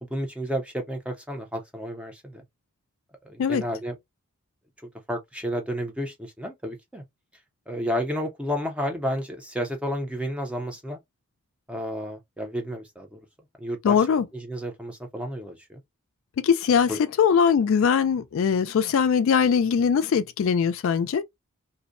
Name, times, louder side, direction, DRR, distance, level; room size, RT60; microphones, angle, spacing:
voice 1, 0.0-2.4 3.2-3.9 5.1-7.0 7.7-11.0 11.7-13.2 13.6-14.0 14.3-15.8 16.9-17.0, equal, 5° right, 0.5 m, -31 dB
voice 2, 13.8-14.3 16.4-21.2, left 6 dB, 65° left, 0.3 m, -21 dB
2.6 x 2.0 x 2.4 m
head